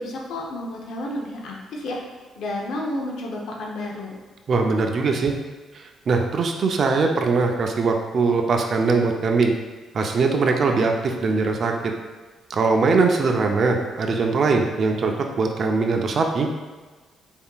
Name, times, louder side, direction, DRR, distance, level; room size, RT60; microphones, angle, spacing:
voice 1, 0.0-2.0 2.4-4.2, left 1 dB, 75° left, -1 dB, 0.7 m, -31 dB
voice 2, 4.5-5.3 5.7-9.5 9.9-11.9 12.5-16.5, right 4 dB, 50° right, 3 dB, 0.5 m, -21 dB
4.4 x 3.6 x 2.3 m, 1.3 s
cardioid pair, 90°, 0 cm